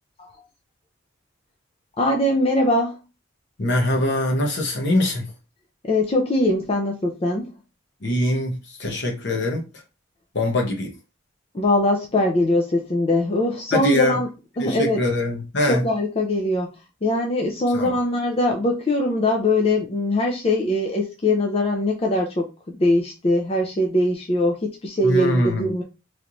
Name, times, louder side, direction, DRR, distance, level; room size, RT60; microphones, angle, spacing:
voice 1, 2.0-3.0 5.8-7.5 11.5-14.3 14.6-15.0 15.7-16.7 17.0-22.4 22.8-25.8, left 1 dB, 30° left, 0.5 m, -21 dB
voice 2, 3.6-5.3 8.0-9.7 10.3-10.9 13.7-14.2 14.6-15.8 17.7-17.9 25.0-25.8, left 1 dB, 60° left, 1.0 m, -23 dB
3.2 x 2.9 x 2.6 m
head